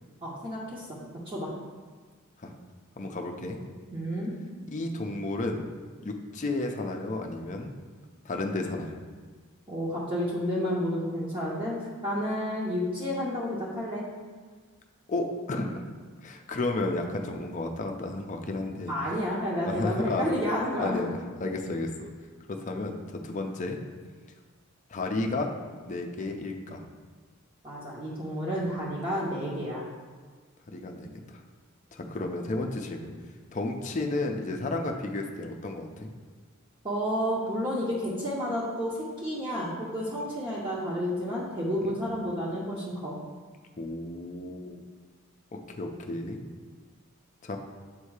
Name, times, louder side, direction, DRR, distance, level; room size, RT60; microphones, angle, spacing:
voice 1, 0.2-0.9 1.3-1.5 3.9-4.3 9.7-14.1 18.9-21.0 27.6-29.8 36.8-43.2, equal, 25° right, -7 dB, 0.8 m, -30 dB
voice 2, 3.0-3.6 4.7-5.6 6.0-7.7 8.2-8.9 15.1-15.9 16.2-18.9 19.6-20.3 20.8-22.1 22.5-22.9 23.2-23.8 24.9-25.5 25.9-26.8 30.7-31.4 31.9-33.1 33.5-36.1 41.8-42.0 43.8-44.9 45.5-46.4 47.4-47.6, left 2 dB, 35° left, 3 dB, 0.5 m, -32 dB
7.2 x 2.7 x 4.7 m, 1.5 s
head